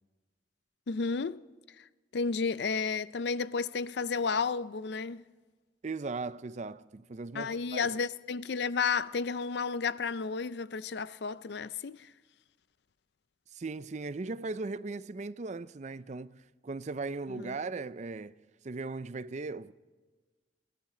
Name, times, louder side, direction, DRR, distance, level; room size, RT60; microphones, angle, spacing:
voice 1, 0.9-1.4 1.8-1.9 2.1-5.2 7.3-12.1 17.4-17.5, left 5 dB, 65° left, 0.5 m, -32 dB
voice 2, 5.8-7.9 13.5-18.3 18.6-19.7, right 3 dB, 40° right, 0.5 m, -38 dB
22.0 x 16.0 x 3.9 m
head